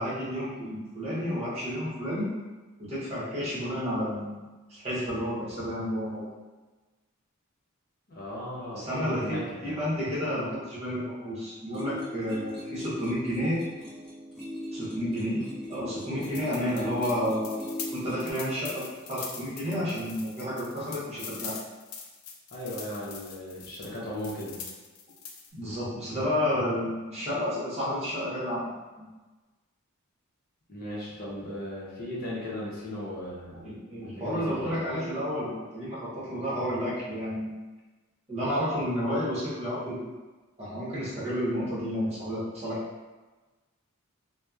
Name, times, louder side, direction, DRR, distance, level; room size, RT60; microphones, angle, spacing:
voice 1, 0.0-2.3 2.8-6.2 8.8-13.6 14.7-15.4 15.7-17.6 17.9-21.6 25.5-28.7 29.0-29.1 33.6-37.5 38.3-40.0 40.6-42.8, equal, 30° right, -9 dB, 0.9 m, -31 dB
voice 2, 8.1-9.8 22.5-24.6 30.7-33.6 33.9-34.9, left 1 dB, 45° left, -6 dB, 0.7 m, -36 dB
sound 1, 11.7-18.3, equal, ahead, 0.8 m, -39 dB
sound 2, 16.2-25.5, left 6 dB, 85° left, 0.4 m, -43 dB
2.8 x 2.1 x 2.3 m, 1.2 s
head